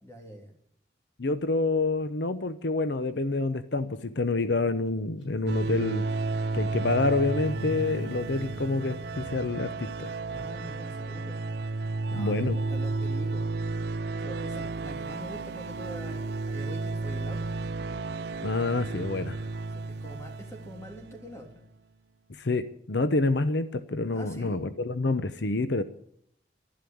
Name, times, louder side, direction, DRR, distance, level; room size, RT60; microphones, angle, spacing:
voice 1, 0.0-0.5 7.9-8.2 10.3-11.5 12.1-13.5 14.2-17.4 19.7-21.6 24.1-24.6, equal, 15° left, 2 dB, 3.1 m, -44 dB
voice 2, 1.2-6.1 6.5-10.1 12.1-12.6 18.4-19.4 22.3-25.8, left 3 dB, 65° left, 12 dB, 0.8 m, -28 dB
Car / Engine starting, 5.2-5.3 5.6-10.8, left 1 dB, 85° left, 6.5 m, -45 dB
sound 1, 5.5-21.4, right 3 dB, 60° right, 0.6 m, -33 dB
12.0 x 11.5 x 8.5 m, 0.71 s
head